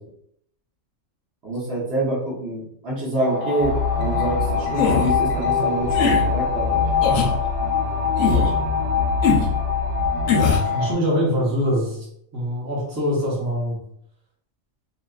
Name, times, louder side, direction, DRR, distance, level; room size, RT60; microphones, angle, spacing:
voice 1, 1.4-7.4, right 1 dB, 55° right, -6 dB, 1.1 m, -27 dB
sound 1, 3.2-10.9, left 6 dB, 80° right, 1.2 m, -24 dB
sound 2, 3.6-10.5, left 3 dB, 50° left, 0.8 m, -27 dB
sound 3, 4.7-5.1 5.9-6.2 7.0-7.3 8.2-8.5 9.2-9.5 10.3-10.7, left 5 dB, 90° left, 1.0 m, -20 dB
voice 2, 10.7-12.0 12.3-13.8, equal, 15° right, -6 dB, 0.8 m, -23 dB
2.7 x 2.4 x 2.3 m, 0.71 s
omnidirectional pair, 1.3 m